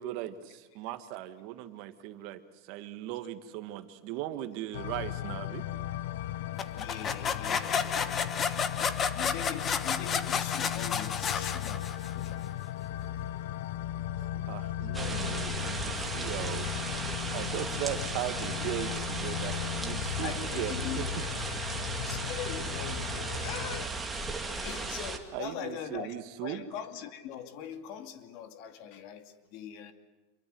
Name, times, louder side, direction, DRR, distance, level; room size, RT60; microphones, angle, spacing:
voice 1, 0.0-5.6 8.8-8.9 14.3-16.7 17.3-21.1 25.3-26.6, right 13 dB, 50° right, 9 dB, 1.9 m, -38 dB
sound 1, 4.7-23.9, left 12 dB, 70° left, 0.8 m, -37 dB
sound 2, 6.6-12.3, left 6 dB, 20° left, 1.2 m, -31 dB
voice 2, 6.7-8.7 9.1-11.9 12.1-12.5 15.7-15.8 20.2-21.3 22.0-23.9 24.5-26.1 26.4-29.9, left 8 dB, 50° left, 8 dB, 2.4 m, -42 dB
sound 3, 14.9-25.2, right 3 dB, 5° right, 2.2 m, -36 dB
27.0 x 23.0 x 7.9 m, 1.2 s
supercardioid pair, 160°, 0 cm